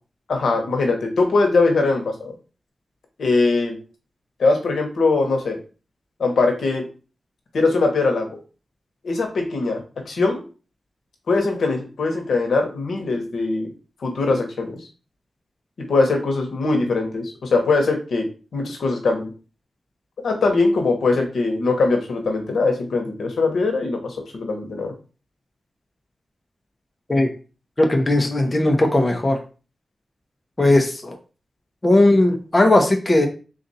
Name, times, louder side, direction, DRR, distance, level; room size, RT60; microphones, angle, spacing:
voice 1, 0.3-2.3 3.2-3.8 4.4-5.6 6.2-6.8 7.5-8.4 9.0-9.8 10.1-10.4 11.3-13.7 14.0-14.8 15.9-18.3 18.5-19.3 20.2-24.9, left 3 dB, 90° left, 2 dB, 1.0 m, -21 dB
voice 2, 27.8-29.4 30.6-31.2 31.8-33.3, left 1 dB, 30° left, 3 dB, 0.8 m, -17 dB
3.9 x 2.5 x 4.1 m, 0.35 s
wide cardioid pair, 85°, 0 cm